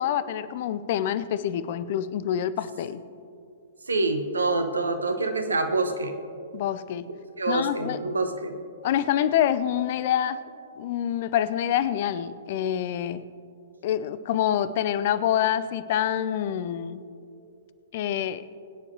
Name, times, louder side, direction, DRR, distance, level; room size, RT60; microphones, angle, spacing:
voice 1, 0.0-3.0 6.5-7.0 7.5-8.0 8.8-10.4 10.8-13.2 13.8-17.0 17.9-18.4, left 10 dB, 45° left, 15 dB, 0.5 m, -26 dB
voice 2, 3.9-6.2 7.4-8.6, right 3 dB, 75° right, 7 dB, 1.2 m, -26 dB
22.0 x 9.7 x 2.9 m, 2.5 s
figure-of-eight pair, 110°, 0 cm